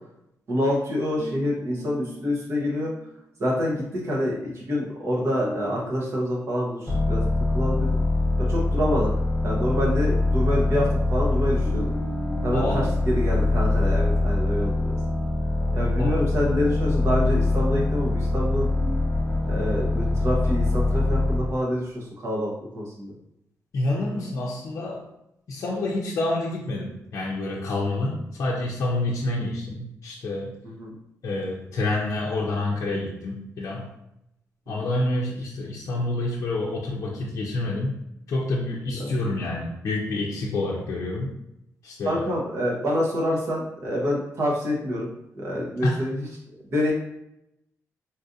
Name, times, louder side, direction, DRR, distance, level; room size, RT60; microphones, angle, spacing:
voice 1, 0.5-2.9 3.4-7.2 7.5-8.0 8.4-9.1 9.4-11.9 12.4-14.9 15.7-18.7 19.4-23.1 30.6-30.9 34.7-34.9 39.0-39.1 42.0-45.1 45.3-46.3 46.7-46.9, equal, 50° right, -3 dB, 0.9 m, -27 dB
sound 1, 1.2-3.2 5.4-7.5 7.9-8.1 11.7-14.8 18.8-19.5, right 2 dB, 5° right, 1.1 m, -41 dB
sound 2, 6.9-21.6, left 2 dB, 10° left, 0.6 m, -23 dB
voice 2, 12.5-12.9 15.6-16.2 23.7-25.1 25.5-30.5 31.2-33.9 34.7-37.9 38.3-41.3 41.8-42.2 45.8-46.0, left 2 dB, 55° left, -4 dB, 0.5 m, -28 dB
3.9 x 2.5 x 2.6 m, 0.82 s
wide cardioid pair, 175°, 6 cm